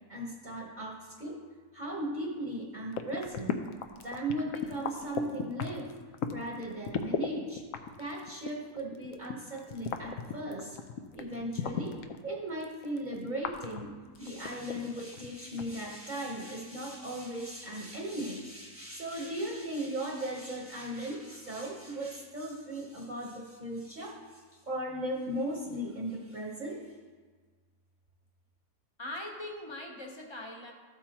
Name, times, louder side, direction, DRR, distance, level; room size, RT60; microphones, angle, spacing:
voice 1, 0.1-1.4 1.7-3.6 4.0-5.9 6.3-7.6 8.0-10.8 11.1-12.0 12.2-13.9 14.2-26.9, right 1 dB, 30° right, -2 dB, 1.0 m, -37 dB
sound 1, 2.9-7.3 7.6-12.2 12.6-15.3 15.5-15.6, left 8 dB, 65° left, 0.9 m, -35 dB
voice 2, 29.0-30.7, left 1 dB, 20° left, 1 dB, 0.8 m, -41 dB
13.5 x 8.1 x 3.0 m, 1.5 s
omnidirectional pair, 1.8 m